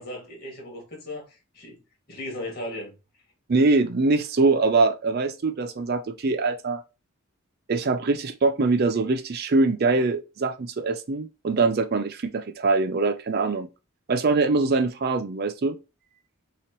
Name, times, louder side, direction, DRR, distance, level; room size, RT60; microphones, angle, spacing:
voice 1, 0.0-1.8 2.1-3.0, left 1 dB, 45° left, 2.1 m, -36 dB
voice 2, 3.5-6.8 7.7-13.7 14.1-15.8, right 3 dB, 45° right, 0.4 m, -23 dB
5.8 x 3.0 x 3.0 m
head